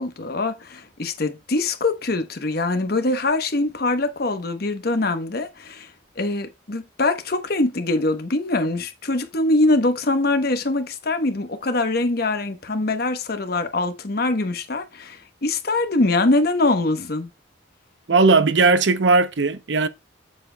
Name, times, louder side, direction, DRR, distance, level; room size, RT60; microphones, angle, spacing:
voice 1, 0.0-5.9 6.2-17.3, left 2 dB, 55° left, 1.0 m, -23 dB
voice 2, 18.1-19.9, right 3 dB, 75° right, 0.7 m, -17 dB
7.4 x 7.2 x 2.2 m
head